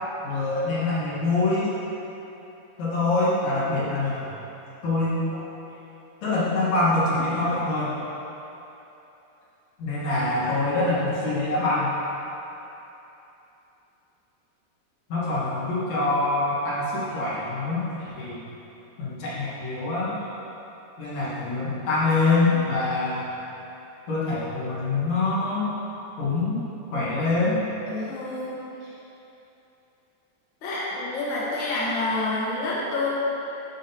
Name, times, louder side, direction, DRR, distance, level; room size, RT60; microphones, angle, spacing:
voice 1, 0.2-1.7 2.8-4.4 4.8-5.5 6.2-8.0 9.8-12.0 15.1-18.5 19.0-20.2 21.0-23.3 24.1-25.7 26.2-26.6 26.9-27.6, left 2 dB, 55° left, -8 dB, 2.2 m, -25 dB
voice 2, 27.8-28.9 30.6-33.1, left 2 dB, 80° left, -8 dB, 1.1 m, -28 dB
10.5 x 6.1 x 2.8 m, 3.0 s
omnidirectional pair, 4.5 m